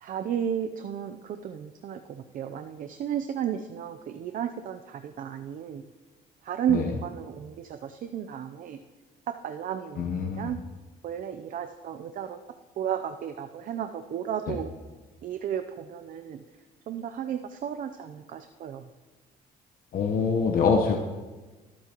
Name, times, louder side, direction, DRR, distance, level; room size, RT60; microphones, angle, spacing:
voice 1, 0.0-5.8 6.4-8.8 9.4-10.6 11.0-12.4 12.8-14.7 15.2-16.4 16.9-18.9, right 9 dB, 55° right, 8 dB, 0.6 m, -33 dB
voice 2, 10.0-10.5 14.5-14.6 19.9-21.0, left 5 dB, 60° left, 1 dB, 1.1 m, -25 dB
23.0 x 8.7 x 3.0 m, 1.3 s
cardioid pair, 110°, 17 cm